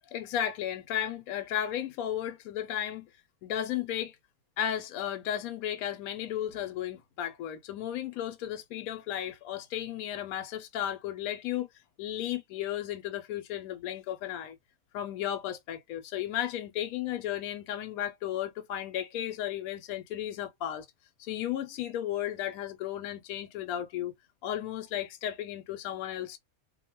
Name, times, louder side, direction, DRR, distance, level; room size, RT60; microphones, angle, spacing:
voice 1, 0.1-3.1 3.4-4.2 4.6-11.7 12.0-14.6 14.9-20.9 21.2-24.1 24.4-26.4, left 11 dB, 75° left, 1.0 m, -34 dB
2.6 x 2.2 x 2.8 m
omnidirectional pair, 1.5 m